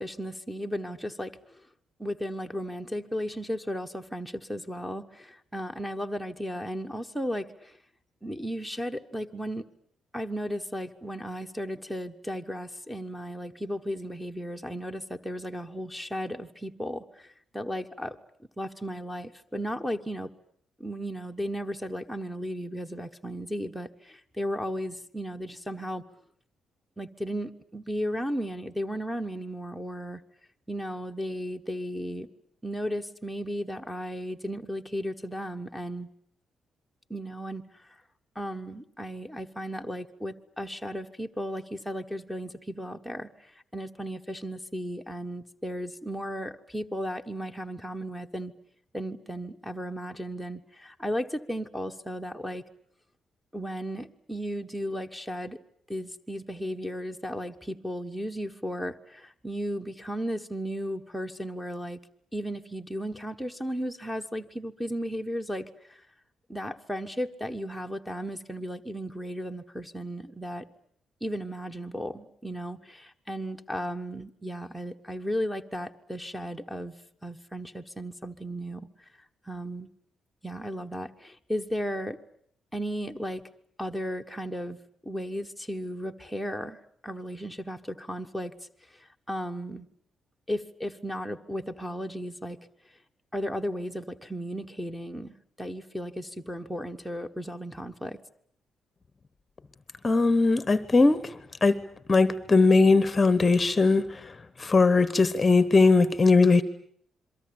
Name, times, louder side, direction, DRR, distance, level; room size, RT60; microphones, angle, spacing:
voice 1, 0.0-1.6 2.0-7.8 8.2-9.6 10.1-18.2 18.6-20.3 20.8-26.0 27.0-30.2 30.7-32.3 32.6-36.1 37.1-37.6 38.3-43.3 43.7-48.5 48.9-52.6 53.5-55.6 55.9-62.0 62.3-66.0 66.5-70.6 71.2-76.9 77.2-78.9 79.5-79.9 80.4-82.2 82.7-83.4 83.8-84.8 85.0-88.5 89.0-89.9 90.5-92.6 93.3-98.2, equal, ahead, 7 dB, 1.2 m, -35 dB
voice 2, 100.0-101.8 102.1-104.3 104.6-106.6, left 3 dB, 20° left, 15 dB, 1.1 m, -20 dB
27.5 x 23.0 x 8.7 m, 0.63 s
cardioid pair, 160°, 0 cm